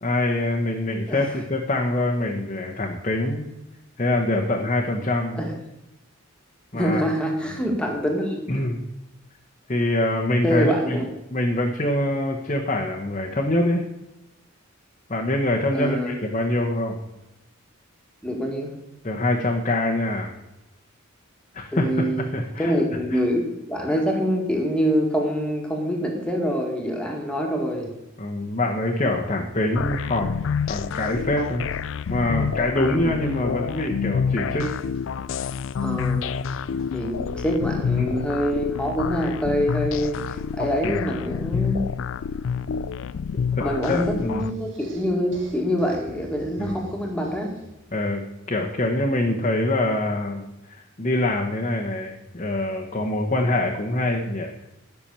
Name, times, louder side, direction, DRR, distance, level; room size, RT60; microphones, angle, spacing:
voice 1, 0.0-3.5 4.0-5.4 6.7-7.0 8.5-8.8 9.7-11.0 11.3-13.8 15.1-17.0 19.0-20.3 21.5-22.7 23.1-23.2 28.2-30.3 30.7-31.6 32.1-34.7 38.0-38.1 40.8-41.3 43.6-44.5 46.6-46.9 47.9-48.2 48.5-50.4 50.7-54.5, left 1 dB, 35° left, -1 dB, 1.0 m, -24 dB
voice 2, 6.7-8.4 10.4-11.1 15.7-16.2 18.2-18.7 21.7-22.2 22.6-27.9 32.8-33.1 35.8-36.3 36.7-41.9 43.6-47.5, equal, 5° left, 1 dB, 1.8 m, -25 dB
Krucifix Productions against the odds, 29.8-44.5, left 6 dB, 60° left, 0.3 m, -28 dB
sound 1, 44.4-47.9, right 1 dB, 60° right, 2.1 m, -45 dB
10.5 x 6.0 x 6.9 m, 0.94 s
head